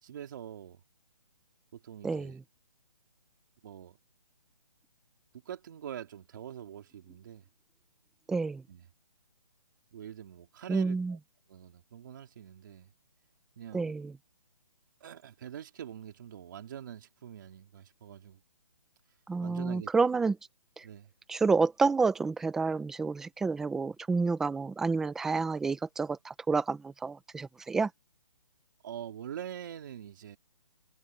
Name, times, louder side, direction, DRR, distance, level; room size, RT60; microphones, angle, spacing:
voice 1, 0.0-0.8 1.7-2.3 3.6-4.0 5.4-7.4 8.7-8.8 9.9-11.2 11.5-12.9 13.6-14.0 15.0-18.4 19.4-19.9 20.8-21.1 28.8-30.4, right 9 dB, 35° right, 3.4 m, -44 dB
voice 2, 2.0-2.4 8.3-8.6 10.7-11.2 13.7-14.1 19.3-20.4 20.8-20.9 21.3-27.9, right 4 dB, ahead, 0.8 m, -29 dB
hypercardioid pair, 170°, 18 cm